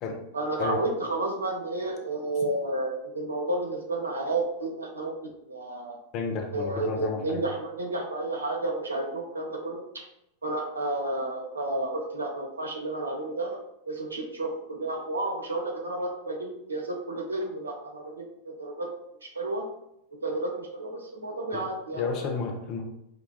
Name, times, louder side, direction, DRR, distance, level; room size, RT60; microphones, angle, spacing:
voice 1, 0.3-5.1 5.4-6.0 6.5-10.0 10.4-13.6 13.9-18.9 19.2-19.7 20.1-22.3, right 2 dB, 75° right, 2 dB, 0.6 m, -31 dB
voice 2, 6.1-7.4 21.5-22.8, left 5 dB, 40° left, 3 dB, 0.6 m, -32 dB
5.0 x 2.3 x 2.2 m, 0.81 s
figure-of-eight pair, 90°, 0 cm